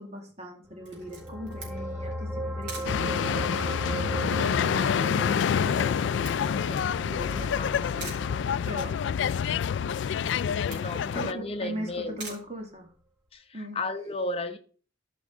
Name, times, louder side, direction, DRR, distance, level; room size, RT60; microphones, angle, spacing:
voice 1, 0.0-8.1 8.7-9.1 11.1-12.9 13.5-13.8, equal, 40° right, 2 dB, 2.2 m, -40 dB
sound 1, 0.8-11.6 11.9-12.1, right 1 dB, 5° right, 0.9 m, -37 dB
Camera, 0.8-13.3, right 3 dB, 75° right, 3.2 m, -49 dB
sound 2, 2.8-11.3, left 7 dB, 85° left, 0.3 m, -27 dB
voice 2, 10.4-12.2 13.3-14.6, left 2 dB, 35° left, 8 dB, 0.9 m, -34 dB
13.0 x 5.2 x 3.7 m, 0.40 s
head